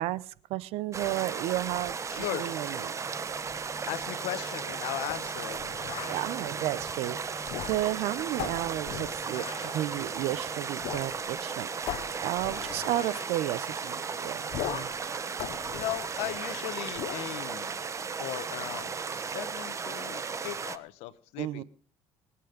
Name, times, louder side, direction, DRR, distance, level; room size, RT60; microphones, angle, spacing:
voice 1, 0.0-2.9 6.0-9.4 9.7-11.7 12.2-14.9 21.4-21.6, right 15 dB, 80° right, 20 dB, 0.8 m, -33 dB
sound 1, 0.9-20.8, right 5 dB, 30° right, 1.1 m, -35 dB
voice 2, 2.1-2.5 3.9-5.6 15.7-17.8 18.2-21.6, left 15 dB, 85° left, 15 dB, 1.1 m, -37 dB
sound 2, 2.9-11.3, left 1 dB, 15° left, 1.7 m, -52 dB
sound 3, 5.1-6.3 7.4-8.0 8.4-9.8 10.8-11.1 11.4-11.5 11.9-13.3 14.5-15.0 15.4-16.5 17.0-17.3, left 13 dB, 70° left, 1.0 m, -39 dB
25.0 x 8.5 x 5.2 m, 0.43 s
cardioid pair, 110°, 10 cm